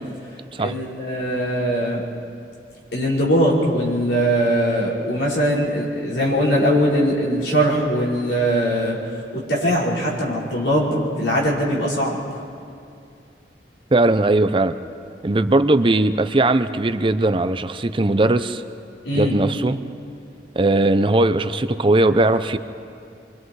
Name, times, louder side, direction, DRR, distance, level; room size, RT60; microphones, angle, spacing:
voice 1, 0.6-2.0 2.9-9.0 9.3-12.2 19.0-19.4, equal, 90° left, -5 dB, 5.4 m, -21 dB
voice 2, 13.9-14.7 15.2-18.6 19.1-19.8 20.6-22.6, right 2 dB, 30° right, 10 dB, 0.6 m, -19 dB
26.5 x 24.0 x 4.8 m, 2.4 s
head